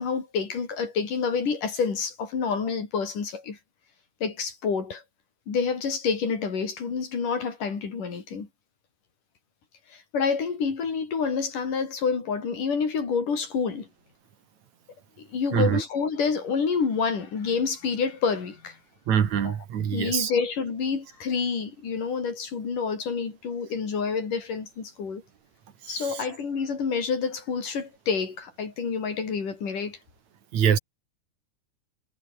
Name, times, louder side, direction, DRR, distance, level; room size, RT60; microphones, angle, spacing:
voice 1, 0.0-3.6 4.2-5.0 5.5-8.5 9.9-13.9 15.2-18.8 19.4-19.6 19.9-25.2 25.9-30.0, left 5 dB, 85° left, 6.1 m, -28 dB
voice 2, 15.5-15.8 19.1-20.3 25.8-26.2 30.5-30.8, right 8 dB, 65° right, 3.4 m, -24 dB
omnidirectional pair, 3.6 m